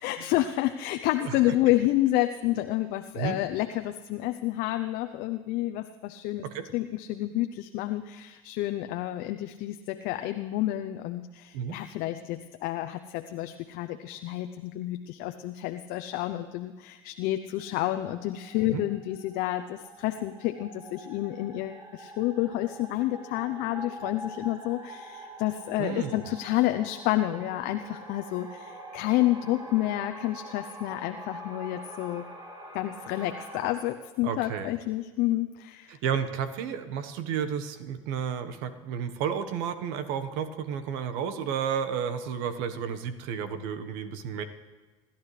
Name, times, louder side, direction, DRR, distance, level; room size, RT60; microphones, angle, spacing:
voice 1, 0.0-6.4 6.7-32.3 32.7-36.0, left 15 dB, 65° left, 8 dB, 0.7 m, -29 dB
sound 1, 17.5-33.7, right 1 dB, 25° right, 3.7 m, -45 dB
voice 2, 25.8-26.2 34.2-34.7 35.9-44.4, right 7 dB, 70° right, 9 dB, 1.3 m, -32 dB
28.0 x 12.0 x 3.3 m, 1.3 s
hypercardioid pair, 80°, 17 cm